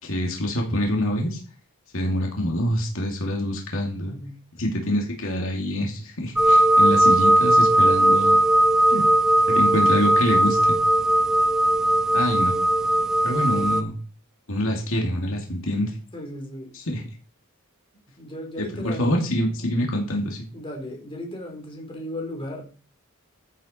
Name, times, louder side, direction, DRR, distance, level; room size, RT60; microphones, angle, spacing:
voice 1, 0.0-1.4 1.9-4.1 4.6-8.4 8.9-9.1 9.5-10.8 12.1-12.6 13.2-14.0 14.5-15.9 16.7-17.0 18.6-20.4, left 1 dB, 65° left, 1 dB, 2.6 m, -25 dB
voice 2, 4.1-4.4 16.1-16.7 18.2-19.2 20.5-22.7, left 1 dB, 25° left, 1 dB, 3.9 m, -36 dB
sound 1, 6.4-13.8, right 1 dB, 5° right, 0.8 m, -18 dB
14.5 x 8.2 x 4.4 m, 0.37 s
head